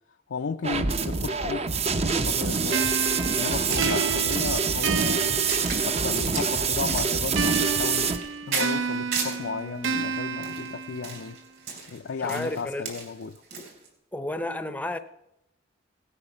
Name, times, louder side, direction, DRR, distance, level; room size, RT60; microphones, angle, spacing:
voice 1, 0.3-1.7 2.2-2.9 3.3-5.5 5.8-11.4 11.9-13.4, left 5 dB, 75° left, 0.5 m, -34 dB
sound 1, 0.6-8.2, right 5 dB, 35° right, 0.6 m, -26 dB
sound 2, 2.7-6.3 7.4-11.4, right 5 dB, 80° right, 0.5 m, -31 dB
sound 3, 3.5-9.5 9.8-13.9, right 5 dB, 60° right, 3.8 m, -35 dB
voice 2, 12.2-12.9 14.1-15.0, left 1 dB, 10° left, 0.6 m, -32 dB
17.5 x 8.7 x 5.5 m
head